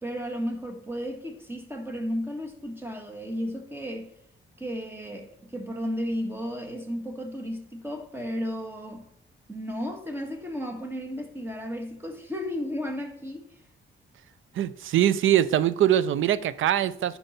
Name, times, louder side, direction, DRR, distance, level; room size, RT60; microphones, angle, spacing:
voice 1, 0.0-4.1 4.6-9.1 9.5-13.5, equal, 10° right, 1.5 m, -33 dB
voice 2, 14.5-17.2, right 11 dB, 75° right, 0.5 m, -23 dB
10.0 x 4.6 x 4.1 m
cardioid pair, 105°, 21 cm